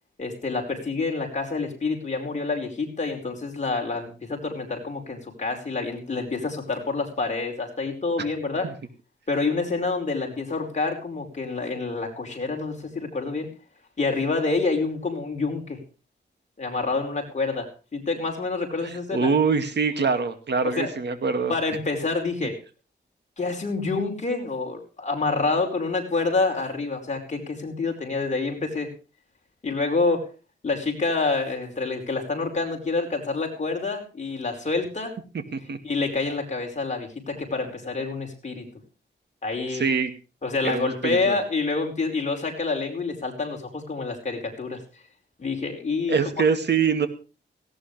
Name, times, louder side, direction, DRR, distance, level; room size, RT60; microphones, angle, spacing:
voice 1, 0.2-8.7 9.3-13.5 14.0-15.8 16.6-19.3 20.6-20.9 21.5-22.5 23.4-28.9 29.6-30.3 30.6-35.1 35.8-38.6 39.4-39.8 40.4-44.8 45.4-46.3, left 3 dB, 40° left, 2 dB, 5.0 m, -27 dB
voice 2, 18.8-21.5 35.5-35.8 39.7-40.1 40.6-41.4 46.1-47.1, right 5 dB, 65° right, 9 dB, 2.3 m, -24 dB
18.5 x 16.0 x 3.4 m, 0.33 s
wide cardioid pair, 150°, 19 cm